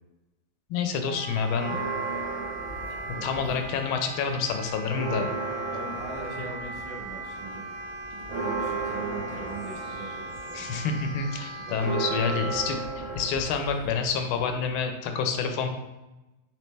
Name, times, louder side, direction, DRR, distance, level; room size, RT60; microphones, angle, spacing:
voice 1, 0.7-1.8 3.2-5.3 10.5-15.7, left 6 dB, 80° left, 5 dB, 1.4 m, -28 dB
Wind instrument woodwind instrument, 1.1-12.8, right 2 dB, 85° right, 1.5 m, -39 dB
sound 1, 1.5-3.9 4.2-14.7, right 3 dB, 45° right, 1.7 m, -35 dB
voice 2, 3.1-3.7 5.7-7.6 8.1-10.8 11.7-12.5, right 3 dB, 65° right, -1 dB, 1.2 m, -41 dB
4.2 x 3.2 x 3.2 m, 1.0 s
omnidirectional pair, 2.3 m